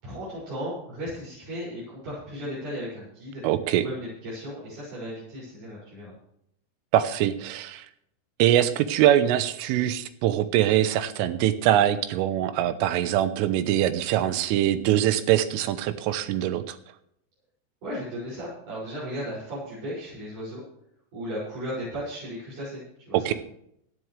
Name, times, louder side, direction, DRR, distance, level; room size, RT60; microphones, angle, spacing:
voice 1, 0.0-3.4 3.8-6.1 17.8-20.6 21.1-23.4, equal, 40° right, -9 dB, 7.7 m, -35 dB
voice 2, 3.4-3.8 6.9-7.9 8.4-16.8 23.1-23.3, right 12 dB, 80° right, 12 dB, 3.4 m, -23 dB
17.0 x 13.0 x 3.3 m, 0.74 s
omnidirectional pair, 5.9 m